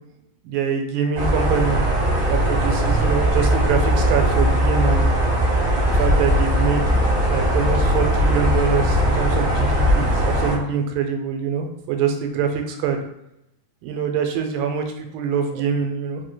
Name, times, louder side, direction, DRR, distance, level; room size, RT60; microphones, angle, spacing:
voice 1, 0.4-1.8 2.3-5.1 5.9-7.0 7.3-13.0 13.8-16.2, right 6 dB, 90° right, 4 dB, 2.4 m, -24 dB
sound 1, 1.1-10.6, equal, 55° right, 1.4 m, -19 dB
5.2 x 3.2 x 2.2 m, 0.82 s
omnidirectional pair, 3.9 m